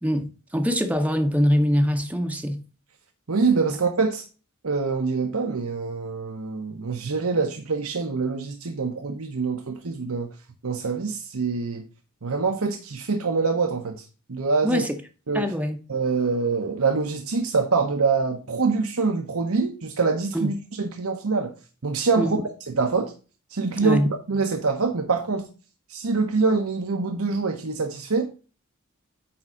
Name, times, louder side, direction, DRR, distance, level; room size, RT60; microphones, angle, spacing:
voice 1, 0.0-2.6 14.6-14.9 15.3-15.8 20.3-20.5 22.2-22.4 23.8-24.1, equal, 5° right, 0.7 m, -23 dB
voice 2, 3.3-4.2 4.6-10.3 10.6-11.9 12.2-14.0 14.3-14.8 15.3-15.5 15.9-21.5 21.8-22.4 22.7-23.1 23.5-25.5 25.9-28.3, right 4 dB, 80° right, 0.9 m, -25 dB
8.8 x 3.7 x 5.0 m
head